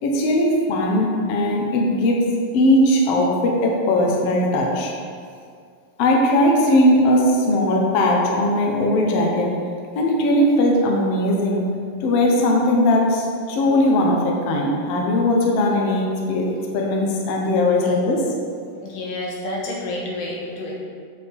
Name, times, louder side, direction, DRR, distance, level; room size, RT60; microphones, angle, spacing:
voice 1, 0.0-2.3 2.5-4.9 6.0-9.5 9.9-11.7 12.0-18.2, left 1 dB, 65° left, -1 dB, 1.5 m, -19 dB
voice 2, 18.8-20.7, left 1 dB, 80° left, -3 dB, 3.1 m, -29 dB
8.1 x 6.9 x 3.6 m, 2.2 s
omnidirectional pair, 3.9 m